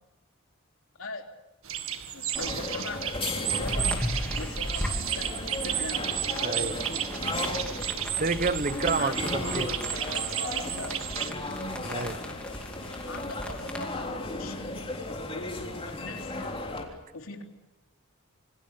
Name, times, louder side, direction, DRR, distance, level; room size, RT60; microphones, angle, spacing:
sound 1, 1.6-11.3, right 10 dB, 70° right, 1.9 m, -33 dB
voice 1, 2.1-6.2 9.0-11.0 13.1-14.8 15.3-16.6 17.1-17.4, left 3 dB, 70° left, 3 dB, 3.5 m, -41 dB
sound 2, 2.3-16.8, left 2 dB, 25° left, 3.5 m, -36 dB
sound 3, 3.6-13.8, equal, 5° left, 3.0 m, -37 dB
voice 2, 6.4-6.8 8.2-9.7 11.8-12.2, right 3 dB, 40° right, 13 dB, 1.0 m, -29 dB
27.0 x 24.5 x 6.8 m, 1.0 s
head